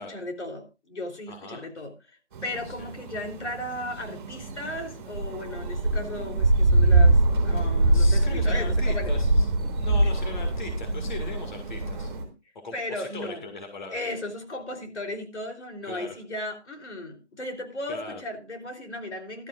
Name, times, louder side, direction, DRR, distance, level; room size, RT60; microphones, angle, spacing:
voice 1, 0.0-9.1 12.7-13.4 13.9-19.5, left 1 dB, 75° left, 4 dB, 3.7 m, -36 dB
voice 2, 1.3-1.6 2.6-2.9 7.6-7.7 7.9-9.5 9.8-12.1 12.6-14.0 15.9-16.2 17.9-18.2, left 3 dB, 40° left, 4 dB, 2.3 m, -39 dB
sound 1, 2.3-12.2, right 2 dB, 20° right, 3.4 m, -24 dB
17.0 x 12.5 x 2.5 m, 0.27 s
hypercardioid pair, 170°, 34 cm